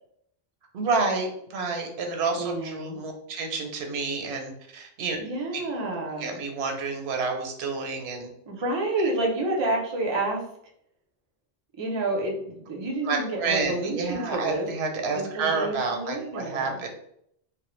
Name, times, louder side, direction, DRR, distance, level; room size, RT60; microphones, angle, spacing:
voice 1, 0.7-5.2 5.5-5.6 6.2-8.3 13.0-16.9, right 4 dB, 85° right, 4 dB, 0.8 m, -29 dB
voice 2, 2.4-3.0 5.2-6.4 8.5-10.4 11.8-14.7 15.1-16.7, right 2 dB, 40° right, 0 dB, 0.4 m, -29 dB
2.1 x 2.0 x 3.0 m, 0.72 s
omnidirectional pair, 1.0 m